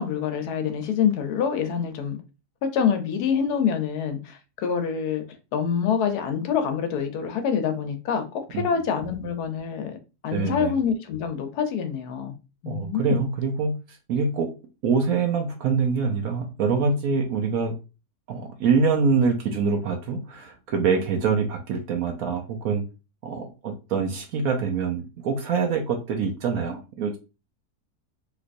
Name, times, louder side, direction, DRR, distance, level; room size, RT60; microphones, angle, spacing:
voice 1, 0.0-2.2 2.6-5.2 5.5-10.0 10.2-12.4 12.6-13.2, left 7 dB, 80° left, 1.2 m, -26 dB
voice 2, 10.3-10.7 12.7-13.7 14.1-14.5 14.8-17.7 18.3-22.8 23.2-27.2, right 5 dB, 70° right, 1.0 m, -25 dB
3.2 x 2.9 x 2.5 m
omnidirectional pair, 1.7 m